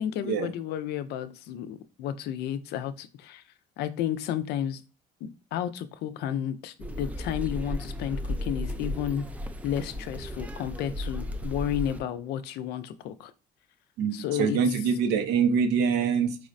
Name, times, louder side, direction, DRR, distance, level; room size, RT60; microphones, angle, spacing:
voice 1, 0.0-3.4 3.8-4.8 5.2-9.2 9.6-13.3 14.1-14.6, left 10 dB, 75° left, 0.4 m, -32 dB
sound 1, 6.8-12.0, left 1 dB, 10° right, 0.3 m, -34 dB
voice 2, 14.0-16.4, right 6 dB, 90° right, 0.7 m, -24 dB
4.7 x 2.1 x 2.5 m
cardioid pair, 110°, 17 cm